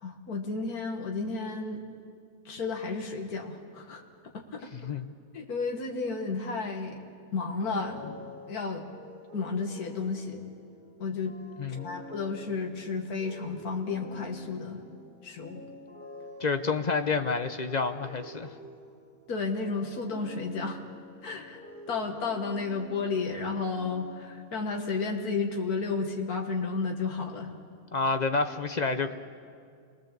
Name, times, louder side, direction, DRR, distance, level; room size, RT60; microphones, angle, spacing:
voice 1, 0.0-1.8 2.5-4.0 4.3-4.9 5.3-7.0 7.3-8.2 8.5-8.9 9.3-10.4 11.0-11.3 11.7-14.8 15.2-15.6 19.3-20.8 21.2-21.6 21.9-27.5, left 4 dB, 85° left, 3 dB, 2.1 m, -32 dB
voice 2, 4.7-5.1 11.6-11.9 16.4-18.5 27.9-29.1, left 4 dB, 35° left, 8 dB, 0.7 m, -29 dB
sound 1, 7.5-24.7, equal, 5° left, 3.0 m, -48 dB
27.5 x 20.0 x 7.4 m, 2.2 s
omnidirectional pair, 1.6 m